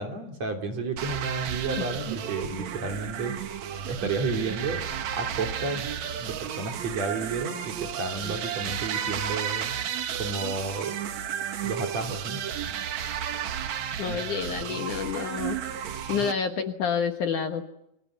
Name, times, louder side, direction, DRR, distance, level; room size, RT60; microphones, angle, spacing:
voice 1, 0.0-3.6 3.9-4.8 5.1-5.9 6.2-9.7 10.2-10.9 11.6-12.4 16.2-16.3, right 3 dB, 45° right, 4 dB, 4.0 m, -32 dB
sound 1, 1.0-16.3, right 9 dB, 60° right, 2.1 m, -33 dB
voice 2, 14.0-15.6 16.1-17.7, left 7 dB, 60° left, 6 dB, 2.4 m, -28 dB
28.5 x 25.0 x 8.2 m, 0.83 s
omnidirectional pair, 4.6 m